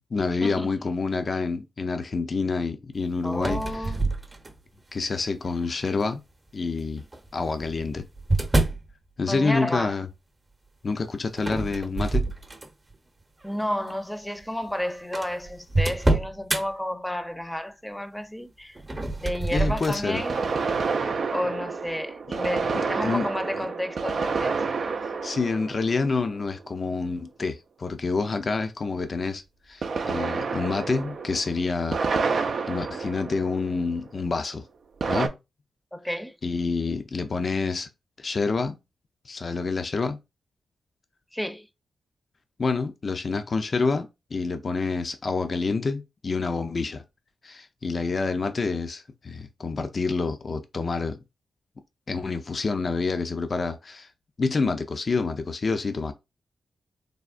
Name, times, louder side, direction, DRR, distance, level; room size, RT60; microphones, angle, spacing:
voice 1, 0.1-3.9 4.9-6.2 6.5-7.0 7.3-8.0 9.2-10.1 10.8-12.3 19.5-20.2 22.7-23.3 23.5-23.6 25.2-29.4 29.7-32.4 32.7-34.6 35.1-35.3 36.4-37.9 38.2-38.8 39.3-40.2 42.6-47.0 47.4-51.2 52.1-54.1 54.4-56.1, left 4 dB, 50° left, 0.4 m, -28 dB
voice 2, 3.2-4.0 9.3-10.0 13.4-18.8 19.2-20.4 21.3-24.6 35.9-36.4 41.3-41.7, left 1 dB, 10° left, 0.6 m, -31 dB
sound 1, 3.3-4.8 5.4-5.9 7.0-8.9 11.4-12.9 13.4-13.6 14.4-14.5 14.7-14.8 15.1-16.6 18.8-20.1, right 2 dB, 30° right, 0.7 m, -27 dB
sound 2, 16.2-16.3 20.2-26.7 29.8-34.0 35.0-35.3, right 4 dB, 65° right, 0.4 m, -29 dB
3.5 x 2.0 x 2.4 m
supercardioid pair, 40°, 0 cm